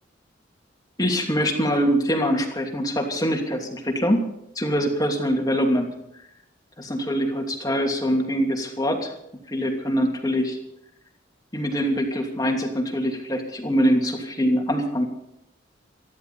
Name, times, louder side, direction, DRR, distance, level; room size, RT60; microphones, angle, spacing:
voice 1, 1.0-4.2 4.5-5.9 6.8-9.1 9.5-10.6 11.5-15.0, equal, 20° left, 2 dB, 2.8 m, -23 dB
26.5 x 11.5 x 4.3 m, 0.79 s
head